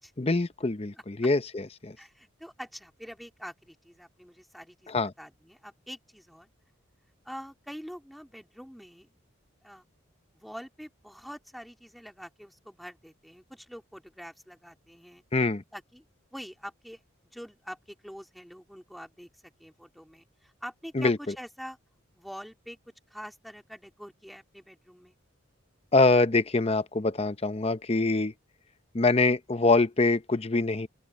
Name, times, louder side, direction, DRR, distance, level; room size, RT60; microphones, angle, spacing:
voice 1, 0.2-2.0 4.9-5.1 15.3-15.6 20.9-21.2 25.9-28.3 28.9-30.9, left 3 dB, 30° left, 0.7 m, -24 dB
voice 2, 2.0-4.9 5.2-6.5 7.3-9.1 9.6-9.8 10.3-15.2 15.7-16.0 16.3-17.0 17.3-19.3 19.6-21.8 22.1-22.8 23.1-25.1, equal, ahead, 2.2 m, -45 dB
open air
head